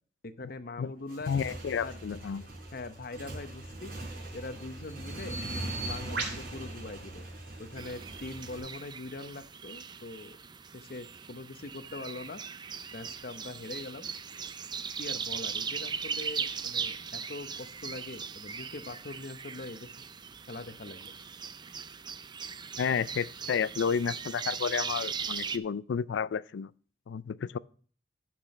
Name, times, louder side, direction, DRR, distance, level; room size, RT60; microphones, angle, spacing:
voice 1, 0.2-1.3 1.8-2.0 2.7-3.9 4.3-5.4 5.8-7.3 7.6-10.4 10.7-12.4 12.9-14.1 15.0-19.9 20.5-21.1, left 2 dB, 55° left, 0.8 m, -42 dB
Motorcycle / Engine, 1.0-8.6, right 1 dB, 55° right, 4.5 m, -41 dB
voice 2, 1.3-2.5 22.8-26.7 27.1-27.6, left 6 dB, 70° left, 0.4 m, -31 dB
Bird vocalization bird call bird song, 3.7-7.9, right 3 dB, 70° right, 3.7 m, -41 dB
sound 1, 7.8-25.6, right 6 dB, 25° right, 0.4 m, -39 dB
15.0 x 6.1 x 3.1 m
head